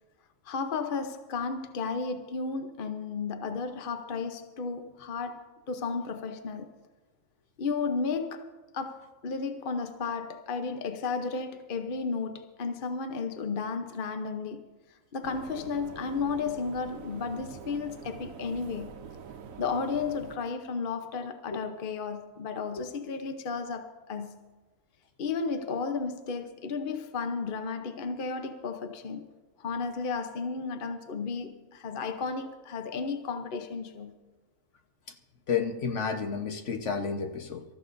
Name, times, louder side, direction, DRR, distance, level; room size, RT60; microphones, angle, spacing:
voice 1, 0.4-6.8 7.6-8.5 8.7-14.7 15.1-19.0 19.6-24.4 25.2-29.3 29.6-34.2, left 4 dB, 45° left, 0.9 m, -33 dB
sound 1, 15.2-20.4, right 6 dB, 85° right, 1.1 m, -45 dB
voice 2, 35.5-37.6, left 6 dB, 65° left, 1.3 m, -31 dB
26.0 x 14.0 x 2.6 m
omnidirectional pair, 1.4 m